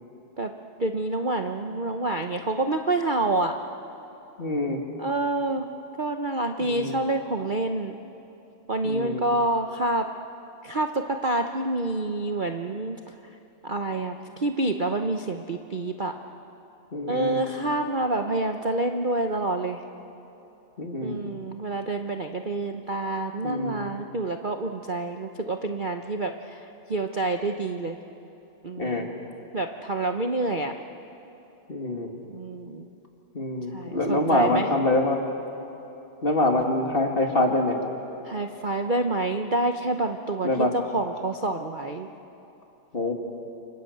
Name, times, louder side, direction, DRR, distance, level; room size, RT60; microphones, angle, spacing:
voice 1, 0.8-3.6 5.0-5.7 6.0-8.0 8.7-10.1 10.6-13.3 13.6-16.2 17.1-19.8 21.0-28.0 28.6-29.1 29.5-30.7 32.3-32.9 33.7-34.7 38.2-42.1, right 2 dB, 85° right, 5 dB, 0.4 m, -28 dB
voice 2, 4.4-4.8 6.6-7.0 8.8-9.3 16.9-17.4 20.8-21.2 23.4-23.9 28.8-29.1 31.7-32.1 33.3-35.2 36.2-37.8 40.4-40.7 42.9-43.1, left 2 dB, 25° left, 2 dB, 2.3 m, -25 dB
29.0 x 25.5 x 8.0 m, 2.9 s
omnidirectional pair, 2.4 m